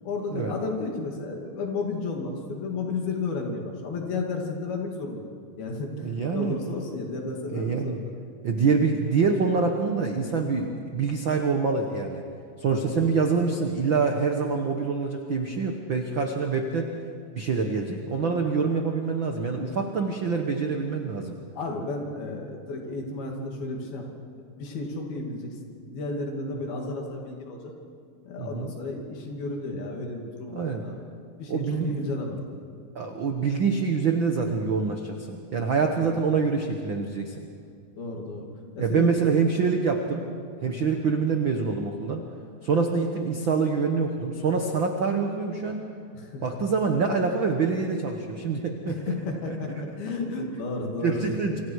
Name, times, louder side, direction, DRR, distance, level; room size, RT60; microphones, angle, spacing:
voice 1, 0.0-5.3 5.6-8.1 12.7-13.1 21.5-25.6 25.9-27.7 28.3-31.0 31.4-32.4 36.0-36.1 38.0-38.5 38.8-39.3 40.8-40.9 46.1-46.4 48.9-51.2, left 3 dB, 80° left, 1 dB, 4.6 m, -33 dB
voice 2, 6.0-6.6 7.5-8.0 8.4-12.2 12.6-16.9 17.3-21.4 28.4-28.7 30.5-30.8 31.5-31.9 32.9-37.4 38.8-40.3 40.6-42.2 42.6-45.8 46.4-49.1 49.5-49.6 51.0-51.6, right 5 dB, 75° right, 3 dB, 1.1 m, -25 dB
28.0 x 25.0 x 4.8 m, 2.3 s
omnidirectional pair, 4.3 m